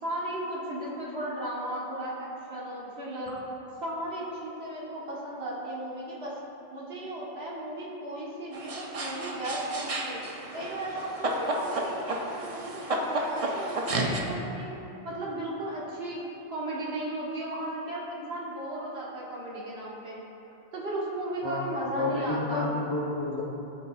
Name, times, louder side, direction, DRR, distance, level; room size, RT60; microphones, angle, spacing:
voice 1, 0.0-3.4 3.8-6.3 6.7-10.2 10.5-14.7 15.0-20.2 20.7-22.7, right 1 dB, 80° right, -6 dB, 1.4 m, -35 dB
sound 1, 8.5-14.2, right 1 dB, 45° right, 0.5 m, -32 dB
voice 2, 22.0-23.4, left 2 dB, 35° left, -4 dB, 0.5 m, -30 dB
12.0 x 4.1 x 2.3 m, 3.0 s
omnidirectional pair, 1.0 m